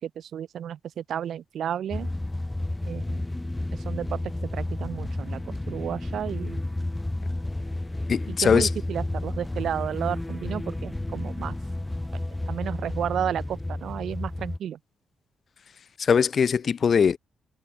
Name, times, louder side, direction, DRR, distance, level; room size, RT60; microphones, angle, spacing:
voice 1, 0.0-2.1 2.9-3.2 3.7-4.2 4.5-6.6 8.3-11.6 12.5-14.8, right 9 dB, 70° right, 5.6 m, -32 dB
sound 1, 1.9-14.6, left 1 dB, 10° left, 1.2 m, -31 dB
voice 2, 8.1-8.7 16.0-17.2, left 6 dB, 50° left, 0.8 m, -21 dB
cardioid pair, 90°, 0 cm